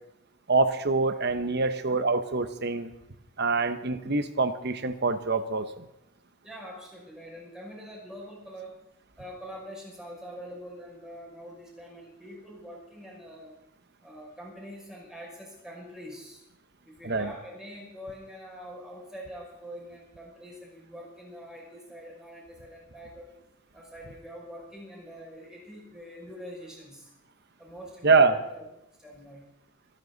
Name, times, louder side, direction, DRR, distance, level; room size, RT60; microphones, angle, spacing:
voice 1, 0.5-2.9 3.4-5.9 17.0-17.3 28.0-28.4, right 3 dB, 50° right, 10 dB, 1.1 m, -25 dB
voice 2, 6.4-8.8 9.2-13.6 14.0-16.4 16.8-23.3 23.7-27.1 27.6-28.6 29.0-29.4, equal, 5° right, -4 dB, 6.2 m, -44 dB
26.5 x 11.0 x 4.1 m, 0.85 s
head